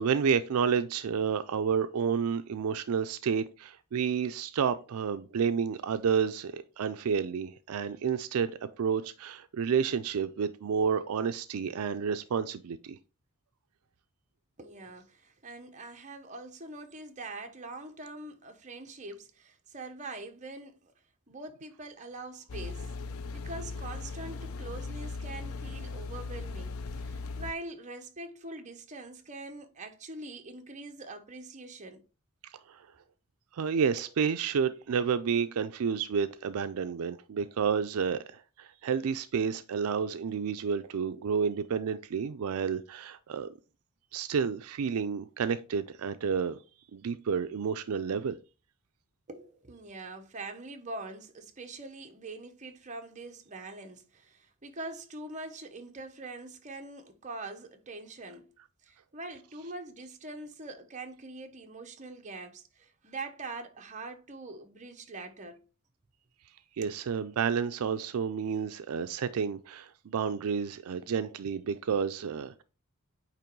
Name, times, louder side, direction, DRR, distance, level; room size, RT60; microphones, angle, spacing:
voice 1, 0.0-8.5 8.8-13.0 32.7-32.9 33.5-43.5 44.1-46.6 46.9-48.4 66.8-72.6, right 6 dB, 75° right, 0.4 m, -30 dB
voice 2, 14.6-20.9 21.3-22.9 23.3-32.0 49.3-58.5 58.8-65.6 66.8-67.0, right 2 dB, 35° right, 0.9 m, -43 dB
sound 1, 22.5-27.5, left 4 dB, 65° left, 0.5 m, -38 dB
8.9 x 3.0 x 4.5 m
head